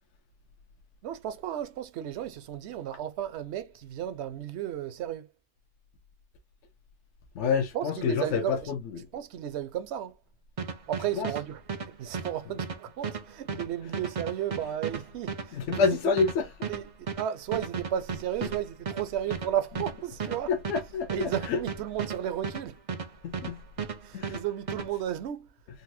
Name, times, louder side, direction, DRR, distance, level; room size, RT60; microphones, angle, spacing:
voice 1, 1.0-5.3 7.7-8.7 9.1-10.2 10.9-16.1 16.7-20.5 21.1-22.8 24.0-25.5, right 11 dB, 65° right, 0.8 m, -34 dB
voice 2, 7.4-8.8 11.2-11.3 13.5-13.6 15.5-16.4 20.5-21.6 23.2-23.6 24.1-24.3, left 5 dB, 70° left, 0.9 m, -27 dB
sound 1, 10.6-23.5 23.8-24.9, right 5 dB, 45° right, 0.4 m, -35 dB
4.0 x 2.1 x 2.6 m
omnidirectional pair, 1.3 m